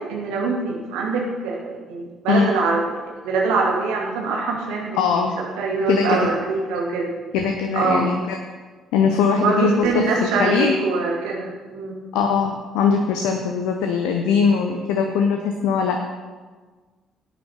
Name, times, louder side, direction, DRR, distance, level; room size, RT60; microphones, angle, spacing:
voice 1, 0.1-5.3 5.6-7.1 7.7-8.1 9.4-12.0, right 3 dB, 65° right, -2 dB, 2.6 m, -23 dB
voice 2, 5.0-5.3 5.9-6.2 7.3-8.4 8.9-10.8 12.1-16.0, left 6 dB, 65° left, 3 dB, 1.0 m, -21 dB
18.0 x 10.0 x 3.7 m, 1.4 s
figure-of-eight pair, 45°, 0 cm